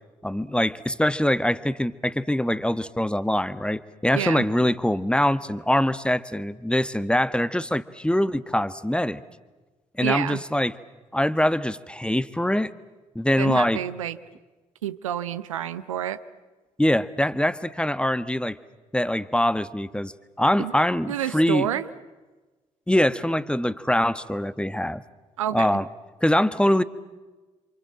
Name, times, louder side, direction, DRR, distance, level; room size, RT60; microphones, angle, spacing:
voice 1, 0.2-9.2 10.0-10.7 11.1-12.7 13.1-13.8 16.8-18.6 18.9-20.1 20.4-21.7 22.9-25.0 25.5-25.9 26.2-26.8, left 1 dB, 5° left, 15 dB, 1.4 m, -23 dB
voice 2, 4.1-4.5 10.0-10.4 13.4-14.2 14.8-16.2 20.6-20.7 21.1-21.9 25.4-25.8, right 11 dB, 85° right, 13 dB, 0.8 m, -29 dB
27.5 x 27.0 x 7.6 m, 1.2 s
figure-of-eight pair, 40°, 16 cm